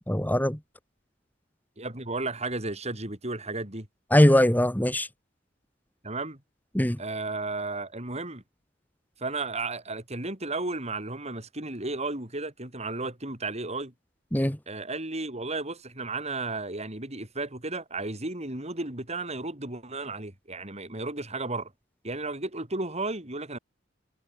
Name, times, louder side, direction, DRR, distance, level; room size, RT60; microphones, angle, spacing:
voice 1, 0.1-0.6 4.1-5.1 6.7-7.0 14.3-14.6, equal, 10° left, 2.1 m, -21 dB
voice 2, 1.8-3.9 6.0-6.4 7.0-8.4 9.2-13.9 14.7-21.7 22.0-23.6, right 2 dB, 35° right, 5.5 m, -33 dB
head